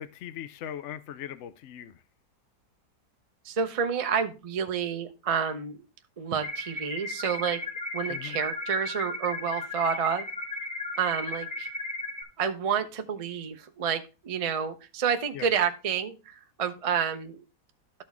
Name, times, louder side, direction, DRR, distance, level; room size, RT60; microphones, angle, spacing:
voice 1, 0.0-2.0 8.1-8.4 15.3-15.5, left 10 dB, 65° left, 0.7 m, -40 dB
voice 2, 3.4-5.8 6.2-7.6 7.9-10.3 11.0-11.7 12.4-17.4, right 7 dB, 55° right, 0.4 m, -29 dB
sound 1, 6.4-12.2, left 2 dB, 5° left, 0.6 m, -35 dB
12.5 x 4.3 x 3.5 m
omnidirectional pair, 1.7 m